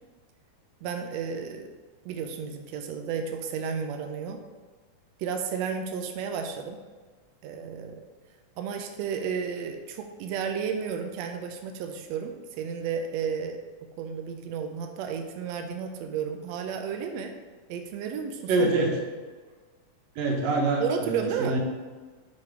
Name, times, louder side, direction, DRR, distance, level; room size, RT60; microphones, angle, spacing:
voice 1, 0.8-1.7 2.0-4.4 5.2-6.8 7.4-8.0 8.6-12.3 12.6-13.6 14.0-17.3 17.7-18.7 20.8-21.6, right 6 dB, 85° right, 5 dB, 1.5 m, -32 dB
voice 2, 18.5-19.0 20.2-21.6, right 2 dB, 65° right, 0 dB, 2.0 m, -25 dB
6.7 x 4.1 x 4.8 m, 1.4 s
omnidirectional pair, 3.6 m